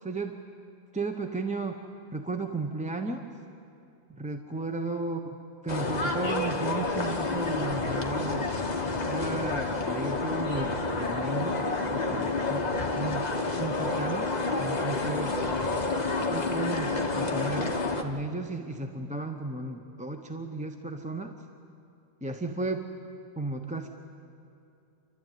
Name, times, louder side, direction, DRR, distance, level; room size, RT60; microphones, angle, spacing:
voice 1, 0.0-0.4 0.9-1.8 2.1-3.2 4.1-5.2 5.6-8.5 9.0-12.7 13.0-13.3 13.6-14.3 14.6-15.4 16.3-21.3 22.2-22.9 23.4-23.9, right 3 dB, 5° right, 4 dB, 0.9 m, -34 dB
sound 1, 5.7-18.0, left 3 dB, 40° left, 1.4 m, -29 dB
28.0 x 13.0 x 9.3 m, 2.7 s
omnidirectional pair, 1.1 m